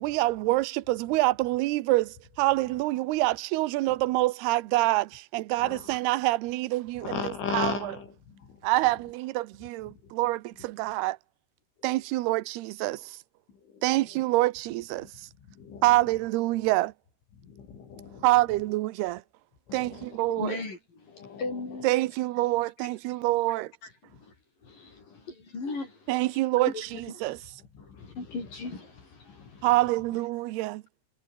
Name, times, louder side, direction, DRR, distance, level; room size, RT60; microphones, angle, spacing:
voice 1, 0.0-7.9 8.6-11.2 11.8-13.2 13.8-15.1 15.8-16.9 18.2-19.2 19.7-20.6 21.8-23.7 26.1-26.7 27.2-27.4 29.6-30.8, right 19 dB, 75° right, 2.5 m, -26 dB
voice 2, 5.6-6.0 7.0-8.6 10.0-10.1 13.6-13.8 15.6-15.9 17.4-18.2 19.7-20.2 21.1-21.8 27.8-28.1 29.3-29.6, left 6 dB, 85° left, 8.0 m, -37 dB
voice 3, 20.4-21.9 23.8-23.9 24.2-24.3 24.6-25.1 25.5-26.1 26.7-27.2 27.8-29.7, left 3 dB, 45° left, 9.4 m, -38 dB
omnidirectional pair, 5.4 m